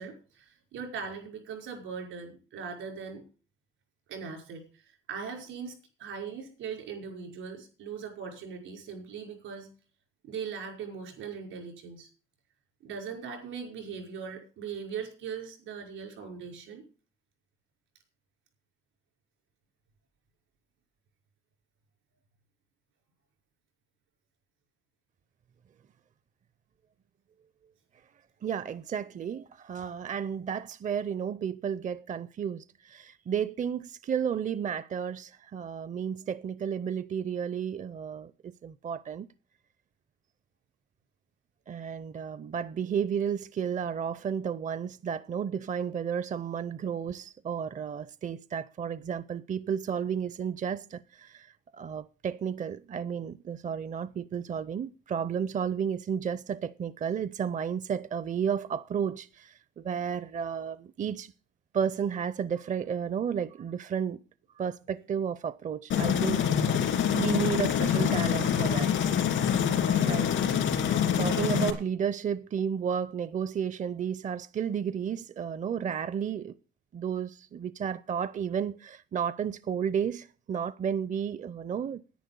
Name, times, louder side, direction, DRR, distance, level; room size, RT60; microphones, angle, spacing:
voice 1, 0.0-3.2 4.1-5.7 6.0-9.7 10.3-12.1 12.8-16.8, right 6 dB, 90° right, 5.4 m, -40 dB
voice 2, 28.4-39.3 41.7-61.3 61.7-64.2 64.6-68.9 70.1-70.3 71.2-76.6 76.9-82.0, right 7 dB, 40° right, 0.5 m, -32 dB
Aircraft, 65.9-71.7, left 8 dB, 85° left, 2.7 m, -25 dB
10.5 x 9.8 x 6.9 m
cardioid pair, 90°, 20 cm